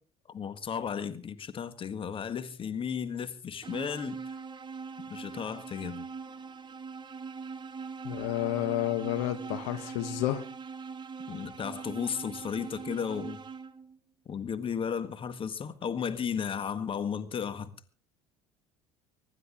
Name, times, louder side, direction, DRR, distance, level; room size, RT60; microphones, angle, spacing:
voice 1, 0.3-4.2 5.1-6.0 11.3-13.4 14.3-17.7, left 7 dB, 35° left, 1.7 m, -34 dB
sound 1, 3.6-14.0, right 5 dB, 30° right, 1.9 m, -42 dB
voice 2, 8.0-10.4, left 14 dB, 60° left, 1.5 m, -30 dB
24.5 x 12.5 x 3.6 m
figure-of-eight pair, 65°, 16 cm